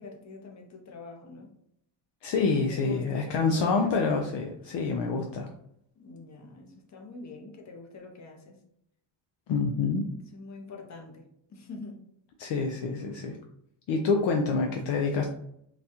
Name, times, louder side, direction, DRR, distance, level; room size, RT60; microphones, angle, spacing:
voice 1, 0.0-1.5 2.7-4.2 6.0-8.6 10.3-11.2 11.5-12.0, left 4 dB, 35° left, 2 dB, 0.8 m, -44 dB
voice 2, 2.2-5.5 9.5-10.0 12.4-13.4 13.9-15.3, left 4 dB, 60° left, 2 dB, 0.5 m, -27 dB
4.0 x 2.3 x 2.7 m, 0.73 s
cardioid pair, 110°, 49 cm